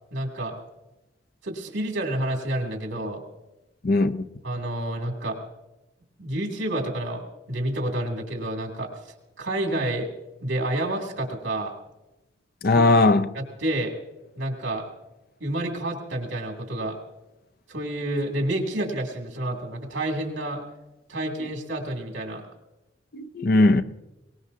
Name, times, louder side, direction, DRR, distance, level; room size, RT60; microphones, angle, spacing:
voice 1, 0.1-0.5 1.4-3.2 4.4-5.4 6.2-7.2 7.5-8.9 9.4-10.1 10.4-11.7 12.7-12.8 13.3-13.9 14.4-14.9 15.4-17.0 17.7-20.6 21.1-22.4, right 1 dB, 85° right, 2.8 m, -29 dB
voice 2, 3.8-4.2 12.6-13.3 23.1-23.8, left 2 dB, 50° left, 0.6 m, -19 dB
22.0 x 19.5 x 2.8 m
head